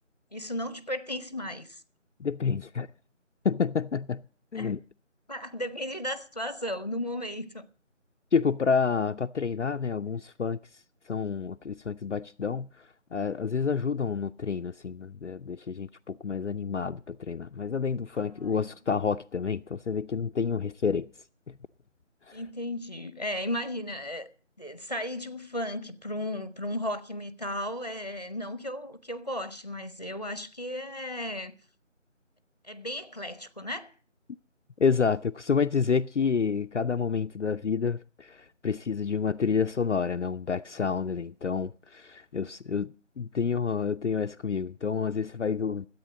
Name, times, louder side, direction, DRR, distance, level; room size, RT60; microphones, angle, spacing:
voice 1, 0.3-1.8 4.6-4.7 5.3-7.7 18.4-18.7 22.3-24.3 24.6-31.6 32.6-33.9, left 1 dB, 30° left, 0.8 m, -35 dB
voice 2, 2.2-2.9 3.4-4.2 4.5-4.8 8.3-10.6 11.1-12.7 13.1-21.1 21.5-21.6 22.3-22.4 34.8-45.9, left 6 dB, 65° left, 0.5 m, -29 dB
13.5 x 8.3 x 7.5 m
figure-of-eight pair, 170°, 38 cm